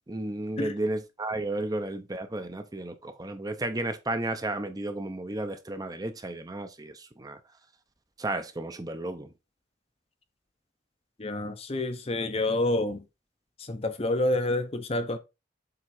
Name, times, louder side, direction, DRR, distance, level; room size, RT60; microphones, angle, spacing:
voice 1, 0.1-7.4 8.2-9.3, right 2 dB, 20° right, 0.6 m, -33 dB
voice 2, 11.2-13.0 13.6-15.2, left 2 dB, 30° left, 0.6 m, -28 dB
7.7 x 3.7 x 4.3 m
head